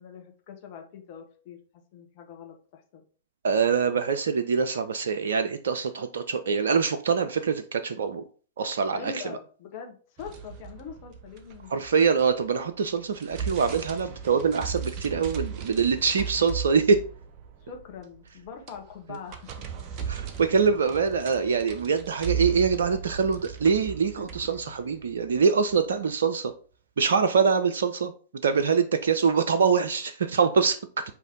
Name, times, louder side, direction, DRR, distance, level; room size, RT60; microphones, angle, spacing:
voice 1, 0.0-1.6 1.9-3.0 8.9-11.8 16.4-16.6 17.6-19.7 19.9-20.1 24.2-24.4, left 7 dB, 45° left, 3 dB, 1.0 m, -43 dB
voice 2, 3.4-8.2 8.6-9.2 11.7-17.0 19.1-19.2 20.1-26.5 27.0-28.1 28.4-31.0, right 5 dB, 65° right, 8 dB, 0.4 m, -24 dB
sound 1, 10.2-12.5 12.9-25.9, right 7 dB, 40° right, 0.7 m, -37 dB
4.8 x 2.8 x 3.8 m, 0.40 s
figure-of-eight pair, 100°, 0 cm